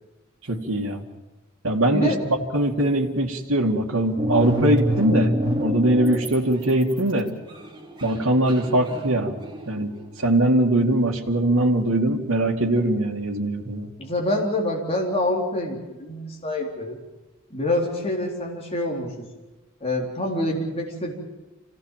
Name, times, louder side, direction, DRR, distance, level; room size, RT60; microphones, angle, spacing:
voice 1, 0.5-1.0 1.6-2.1 2.5-5.3 5.6-7.3 8.0-9.4 9.7-13.9, right 1 dB, 70° right, -1 dB, 2.3 m, -21 dB
voice 2, 1.9-2.2 14.0-17.0 17.5-19.3 19.8-21.1, left 1 dB, 30° left, -1 dB, 3.9 m, -26 dB
sound 1, 4.2-6.3 6.6-10.0, equal, 25° right, 3.3 m, -26 dB
26.5 x 17.5 x 7.5 m, 1.1 s
head